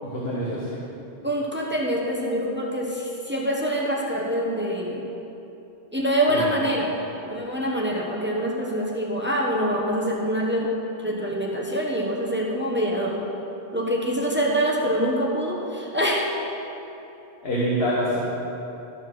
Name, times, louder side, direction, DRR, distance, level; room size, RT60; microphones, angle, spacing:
voice 1, 0.0-0.8 6.3-6.5 17.4-18.2, equal, 75° left, -6 dB, 1.6 m, -26 dB
voice 2, 1.2-5.1 5.9-6.9 7.3-10.7 11.0-13.2 13.7-16.3, equal, 10° right, -2 dB, 1.0 m, -25 dB
13.5 x 4.5 x 6.2 m, 2.9 s
omnidirectional pair, 1.1 m